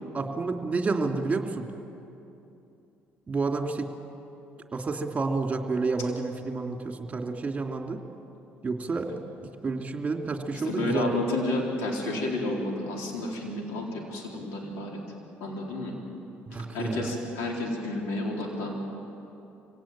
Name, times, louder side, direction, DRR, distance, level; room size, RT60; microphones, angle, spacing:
voice 1, 0.1-1.7 3.3-3.9 4.7-8.0 8.6-9.1 9.4-11.2 16.5-17.1, right 3 dB, 25° right, 3 dB, 2.9 m, -29 dB
voice 2, 10.5-15.0 15.4-15.9 16.7-18.7, left 2 dB, 85° left, 0 dB, 4.3 m, -31 dB
25.0 x 18.0 x 9.0 m, 2.8 s
supercardioid pair, 90°, 5 cm